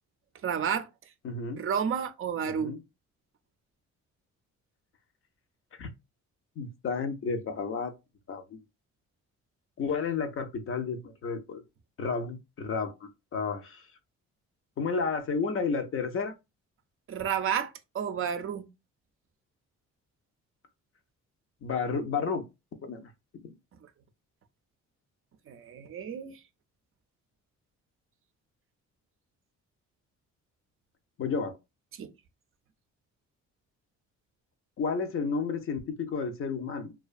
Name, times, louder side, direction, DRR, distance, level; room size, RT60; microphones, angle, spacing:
voice 1, 0.4-0.9 1.6-2.7 17.1-18.7 25.5-26.4 32.0-32.1, right 7 dB, 45° right, 0.4 m, -31 dB
voice 2, 1.2-1.6 2.4-2.8 5.8-5.9 6.6-7.9 8.3-8.6 9.8-11.6 12.0-13.9 14.8-16.3 21.6-22.4 22.8-23.5 31.2-31.6 34.8-36.9, left 5 dB, 45° left, 0.6 m, -32 dB
2.4 x 2.3 x 2.4 m
cardioid pair, 90°, 30 cm